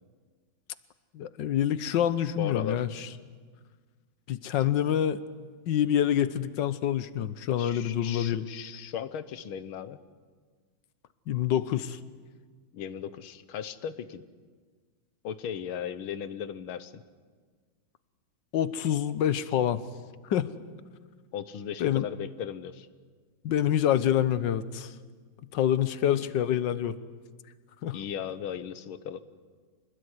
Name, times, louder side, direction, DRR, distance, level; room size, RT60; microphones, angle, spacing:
voice 1, 1.1-3.1 4.3-5.2 5.7-8.5 11.3-12.0 18.5-19.8 20.3-20.5 21.8-22.1 23.4-24.9 25.5-27.0 27.8-28.0, left 10 dB, 65° left, 14 dB, 1.6 m, -26 dB
voice 2, 2.4-2.8 4.6-4.7 7.6-10.0 12.7-14.2 15.2-17.0 21.3-22.9 27.9-29.2, left 8 dB, 90° left, 14 dB, 1.9 m, -37 dB
26.0 x 20.5 x 9.7 m, 1.5 s
omnidirectional pair, 2.2 m